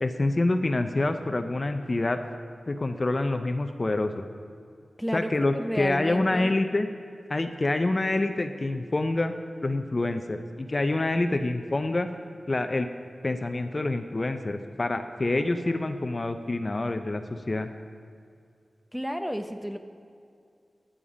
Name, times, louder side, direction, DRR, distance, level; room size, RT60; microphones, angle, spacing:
voice 1, 0.0-2.2 2.7-4.2 5.1-6.9 7.3-9.3 9.6-12.1 12.5-12.9 13.2-17.7, left 2 dB, 40° left, 8 dB, 0.6 m, -27 dB
voice 2, 5.0-6.5 18.9-19.8, equal, 5° right, 7 dB, 0.8 m, -31 dB
11.0 x 10.0 x 5.1 m, 2.4 s
wide cardioid pair, 60°, 0 cm